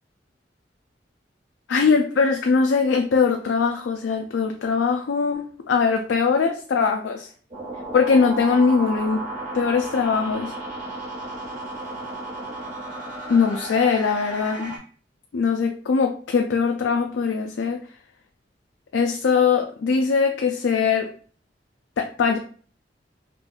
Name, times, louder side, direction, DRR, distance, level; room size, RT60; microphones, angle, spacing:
voice 1, 1.7-7.3 7.9-9.2 9.5-10.5 13.3-14.8 15.3-17.8 18.9-21.1 22.0-22.4, left 5 dB, 85° left, 4 dB, 0.4 m, -21 dB
sound 1, 7.5-14.8, right 2 dB, 45° right, 1.6 m, -33 dB
5.1 x 2.4 x 2.3 m, 0.43 s
head